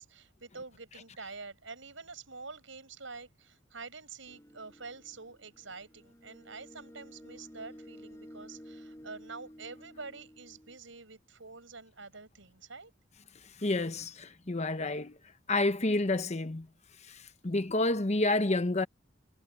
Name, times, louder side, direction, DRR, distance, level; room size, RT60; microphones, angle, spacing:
voice 1, 0.0-12.9, right 4 dB, 70° right, 7.7 m, -47 dB
sound 1, 4.3-10.8, equal, 15° left, 7.1 m, -52 dB
voice 2, 13.6-15.1 15.5-16.7 17.4-18.9, left 2 dB, 35° left, 1.0 m, -29 dB
head